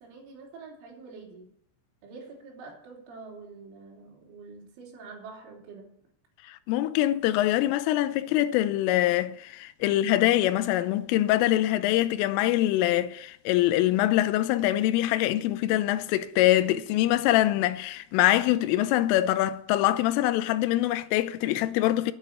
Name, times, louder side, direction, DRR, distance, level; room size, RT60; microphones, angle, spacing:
voice 1, 0.0-1.5 2.0-5.9, right 4 dB, 70° right, 5.6 m, -46 dB
voice 2, 6.5-22.1, left 14 dB, 80° left, 3.2 m, -24 dB
10.5 x 9.7 x 8.7 m
omnidirectional pair, 6.0 m